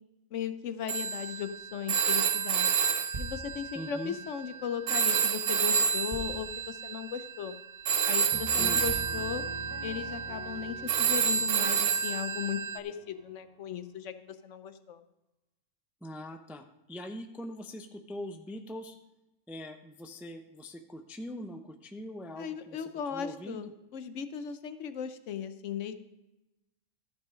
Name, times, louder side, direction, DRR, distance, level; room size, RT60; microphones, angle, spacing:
voice 1, 0.3-2.7 3.2-7.5 8.1-9.4 9.8-15.0 22.3-25.9, left 8 dB, 75° left, 11 dB, 1.0 m, -37 dB
Telephone, 0.9-4.5 4.9-12.8, right 7 dB, 60° right, 0.7 m, -29 dB
sound 1, 3.1-3.5 5.0-5.1 6.1-6.5 7.0-7.1 7.7-7.8 8.9-9.2, right 2 dB, 40° right, 1.4 m, -40 dB
voice 2, 3.7-4.2 8.6-8.8 16.0-19.0 19.5-23.6, equal, ahead, 6 dB, 0.3 m, -42 dB
Piano, 8.3-13.8, right 2 dB, 20° right, 0.8 m, -45 dB
13.5 x 5.7 x 5.0 m, 0.97 s
omnidirectional pair, 1.3 m